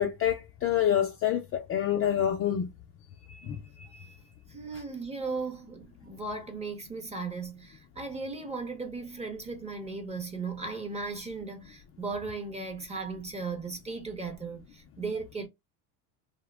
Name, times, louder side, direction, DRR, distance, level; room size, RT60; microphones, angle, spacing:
voice 1, 0.0-2.7 3.3-4.1, left 10 dB, 30° left, 0.4 m, -28 dB
voice 2, 4.5-15.5, right 4 dB, 15° right, 0.6 m, -37 dB
2.7 x 2.1 x 2.2 m
supercardioid pair, 115°, 46 cm